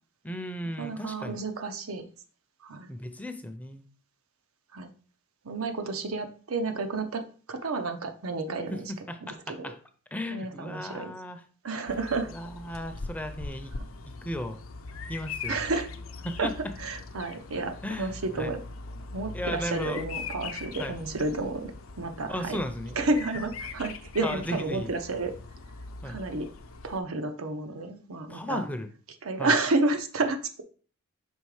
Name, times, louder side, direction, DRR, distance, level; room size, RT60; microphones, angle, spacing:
voice 1, 0.2-1.4 2.9-3.9 8.7-8.8 9.1-9.8 10.1-11.4 12.3-13.7 14.2-14.6 15.1-15.6 16.2-16.5 17.8-18.1 18.4-18.5 19.3-20.0 20.8-20.9 22.3-23.0 24.2-24.9 26.0-26.2 28.3-28.9 29.4-29.5, left 1 dB, 5° left, 7 dB, 0.5 m, -35 dB
voice 2, 0.8-2.0 2.6-2.9 4.7-4.9 5.4-8.9 9.2-9.7 10.3-11.1 11.6-12.3 15.5-15.9 16.4-18.6 19.1-21.7 22.0-22.6 23.0-25.3 26.0-26.5 26.8-28.6 29.2-30.6, right 3 dB, 90° right, 6 dB, 0.8 m, -31 dB
Bird vocalization bird call bird song, 11.9-27.0, left 4 dB, 75° left, 0.7 m, -41 dB
5.4 x 3.7 x 4.7 m, 0.41 s
head